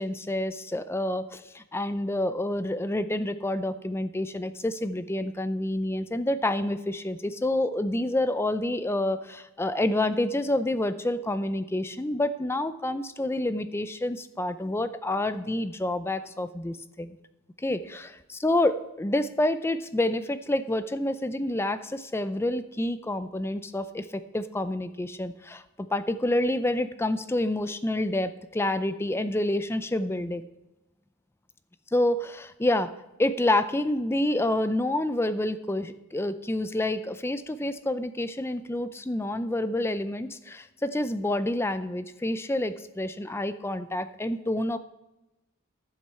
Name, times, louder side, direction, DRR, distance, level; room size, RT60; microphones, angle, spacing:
voice 1, 0.0-17.2 17.6-30.4 31.9-32.9 33.2-44.8, left 1 dB, 10° left, 11 dB, 0.4 m, -28 dB
11.5 x 7.7 x 5.6 m, 0.98 s
head